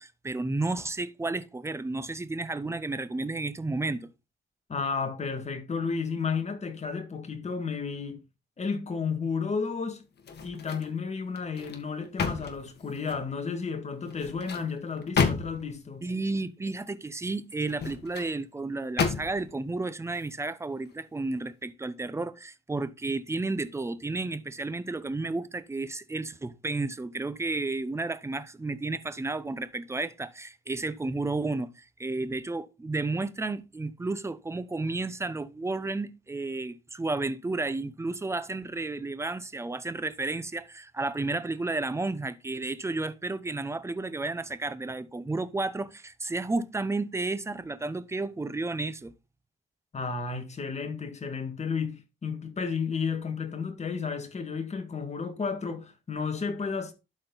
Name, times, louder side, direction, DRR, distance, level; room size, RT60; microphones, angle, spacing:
voice 1, 0.0-4.1 16.0-49.1, right 3 dB, 15° right, 0.8 m, -32 dB
voice 2, 4.7-8.2 8.6-10.0 10.4-16.0 49.9-56.9, left 5 dB, 35° left, 1.9 m, -32 dB
sound 1, 10.2-10.9 11.4-13.3 14.1-15.8 17.6-18.3 19.0-19.6 20.1-20.3, left 5 dB, 55° left, 1.7 m, -32 dB
12.0 x 4.3 x 4.0 m
cardioid pair, 90°, 20 cm